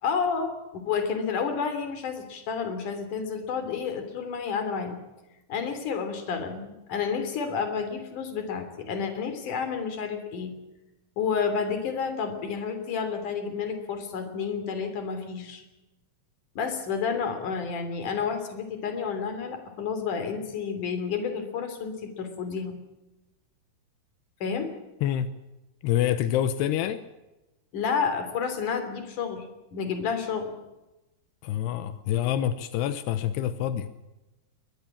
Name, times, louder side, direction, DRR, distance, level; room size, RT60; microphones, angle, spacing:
voice 1, 0.0-5.0 5.5-10.5 11.2-15.6 16.6-22.7 24.4-24.7 27.7-29.5 29.7-30.5, left 6 dB, 50° left, 8 dB, 4.3 m, -30 dB
voice 2, 25.8-27.0 31.4-33.9, left 11 dB, 85° left, 12 dB, 3.0 m, -26 dB
22.5 x 19.5 x 7.3 m, 1.0 s
omnidirectional pair, 4.7 m